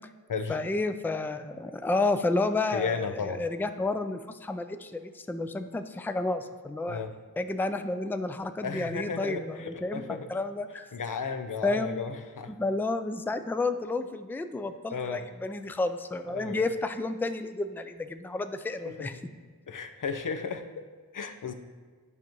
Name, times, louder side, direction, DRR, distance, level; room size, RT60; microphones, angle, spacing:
voice 1, 0.5-7.0 7.4-10.9 11.6-11.9 12.6-19.2, left 2 dB, 5° left, 9 dB, 0.4 m, -31 dB
voice 2, 2.7-3.4 6.9-7.1 8.6-10.3 10.9-12.5 14.9-15.2 16.3-16.6 18.8-19.2 19.7-20.8 21.1-21.5, left 5 dB, 60° left, 8 dB, 0.7 m, -34 dB
9.8 x 5.3 x 3.1 m, 1.5 s
cardioid pair, 40°, 37 cm